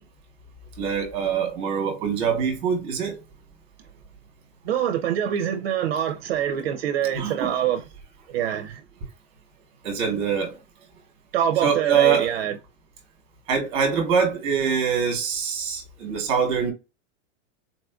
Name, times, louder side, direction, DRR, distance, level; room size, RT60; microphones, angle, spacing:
voice 1, 0.8-3.2 7.1-7.5 9.8-10.5 11.6-12.4 13.5-16.7, right 6 dB, 15° right, 0.9 m, -24 dB
voice 2, 4.7-7.8 8.3-8.8 11.3-12.5, right 10 dB, 55° right, 0.5 m, -25 dB
4.0 x 2.4 x 2.3 m
supercardioid pair, 175°, 37 cm